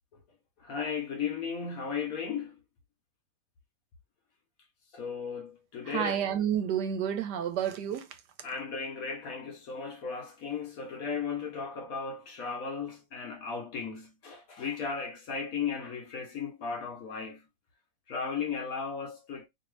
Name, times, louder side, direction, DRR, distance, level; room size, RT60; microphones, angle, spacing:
voice 1, 0.6-2.5 4.9-6.2 8.4-17.5 18.1-19.5, left 6 dB, 60° left, 1.1 m, -36 dB
voice 2, 5.8-8.2, right 9 dB, 75° right, 1.1 m, -30 dB
2.9 x 2.7 x 3.1 m
omnidirectional pair, 2.0 m